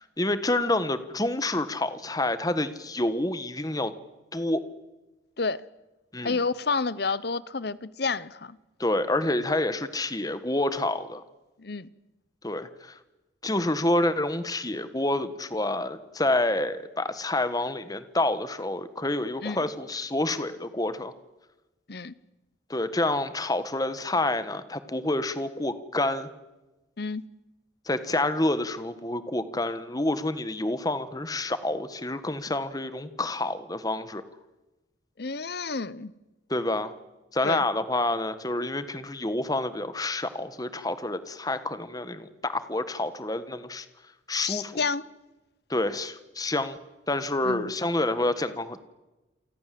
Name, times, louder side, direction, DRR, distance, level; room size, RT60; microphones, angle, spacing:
voice 1, 0.2-3.9 4.3-4.6 6.1-6.4 8.8-11.2 12.4-13.0 13.4-21.1 22.7-26.3 27.9-34.2 36.5-36.9 37.3-43.9 44.3-44.8 45.7-46.8 47.1-48.8, left 2 dB, 20° left, 1.5 m, -28 dB
voice 2, 6.2-8.6 11.6-11.9 19.4-19.6 21.9-22.1 27.0-27.3 35.2-36.1 37.4-37.6 44.4-45.0 47.4-47.7, left 4 dB, 55° left, 0.9 m, -30 dB
29.0 x 24.5 x 7.7 m
head